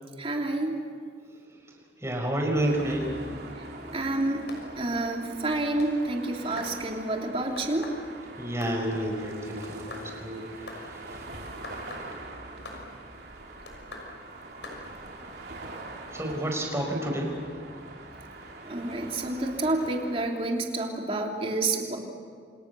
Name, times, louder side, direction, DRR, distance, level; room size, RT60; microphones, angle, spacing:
voice 1, 0.2-0.8 3.9-4.4 4.8-7.9 18.6-22.0, right 2 dB, 35° right, 1 dB, 3.3 m, -29 dB
voice 2, 2.0-3.1 8.4-11.2 16.1-17.3, right 1 dB, 15° right, 1 dB, 5.3 m, -30 dB
sound 1, 2.5-20.3, right 2 dB, 60° right, 3.7 m, -43 dB
sound 2, 4.5-4.6 5.5-5.9 6.6-6.7 7.6-8.0 8.6-8.8 9.6-10.1 10.7-10.8 11.6-12.1 12.6-12.8 13.7-14.1 14.6-14.8, left 2 dB, 90° left, 6.2 m, -41 dB
29.5 x 26.0 x 7.0 m, 2.1 s
head